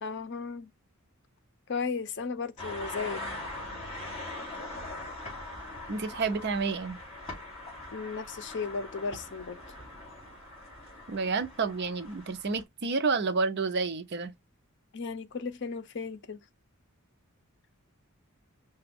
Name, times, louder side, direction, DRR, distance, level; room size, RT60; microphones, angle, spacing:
voice 1, 0.0-0.7 1.7-3.2 7.9-9.6 14.9-16.4, left 5 dB, 55° left, 0.6 m, -35 dB
sound 1, 2.6-12.6, left 2 dB, 30° left, 3.3 m, -42 dB
voice 2, 5.9-7.0 11.1-14.3, right 4 dB, 50° right, 0.6 m, -30 dB
5.8 x 2.2 x 3.5 m
head